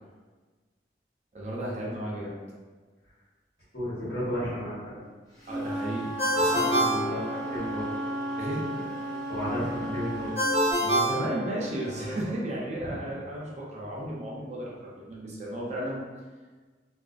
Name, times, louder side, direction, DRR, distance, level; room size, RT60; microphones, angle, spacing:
voice 1, 1.3-2.3 5.5-6.1 6.3-7.1 8.4-8.6 10.8-16.0, right 1 dB, 40° right, -5 dB, 0.5 m, -34 dB
voice 2, 3.7-4.9 6.9-7.9 9.3-10.3 12.8-13.0, equal, 65° left, -10 dB, 1.2 m, -33 dB
Wind instrument woodwind instrument, 5.4-10.5, right 1 dB, 20° left, 0.5 m, -34 dB
Ringtone, 6.2-7.9 10.4-12.0, equal, 10° right, 0.9 m, -26 dB
sound 1, 6.9-12.2, right 1 dB, 40° left, 0.9 m, -46 dB
2.4 x 2.2 x 2.4 m, 1.4 s
head